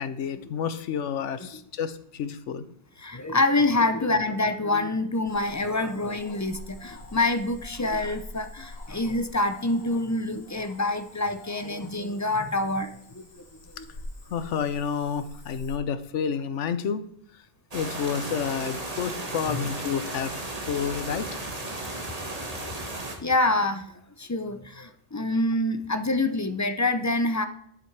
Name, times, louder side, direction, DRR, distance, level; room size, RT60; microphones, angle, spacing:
voice 1, 0.0-2.6 14.3-17.0 17.7-20.3 20.6-21.4, left 7 dB, 75° left, 13 dB, 1.1 m, -30 dB
voice 2, 3.0-13.3 13.7-13.9 19.5-19.6 21.9-22.0 22.4-23.9 24.2-27.4, left 2 dB, 20° left, 10 dB, 0.4 m, -26 dB
Cricket / Frog, 5.3-15.8, left 1 dB, 60° left, 2.0 m, -46 dB
sound 1, 17.7-23.2, right 2 dB, 30° right, 1.5 m, -35 dB
11.5 x 7.7 x 4.7 m, 0.71 s
omnidirectional pair, 1.3 m